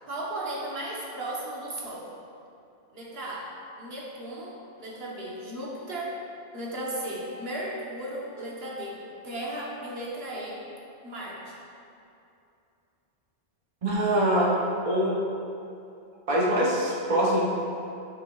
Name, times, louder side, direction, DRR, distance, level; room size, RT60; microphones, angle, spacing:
voice 1, 0.0-2.1 2.9-3.5 3.8-6.2 6.5-10.6 11.0-11.6, right 1 dB, 60° right, -4 dB, 1.2 m, -35 dB
voice 2, 13.8-14.5 14.8-15.2 16.3-17.4, right 1 dB, 35° right, -4 dB, 0.8 m, -23 dB
9.6 x 5.3 x 2.3 m, 2.7 s
omnidirectional pair, 1.2 m